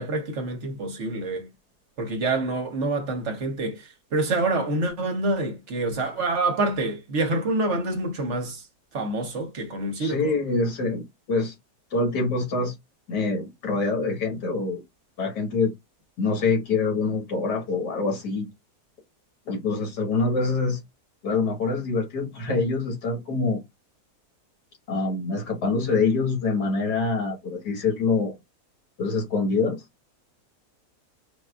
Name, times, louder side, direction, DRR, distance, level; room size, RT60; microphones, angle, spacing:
voice 1, 0.0-1.5 2.0-8.6 8.9-10.3, right 2 dB, 55° right, 1.0 m, -27 dB
voice 2, 10.0-11.5 11.9-12.8 13.1-14.8 15.2-15.7 16.2-18.5 19.5-20.8 21.2-23.6 24.9-28.3 29.0-29.8, left 3 dB, 85° left, 2.0 m, -25 dB
4.7 x 2.4 x 2.3 m
omnidirectional pair, 1.7 m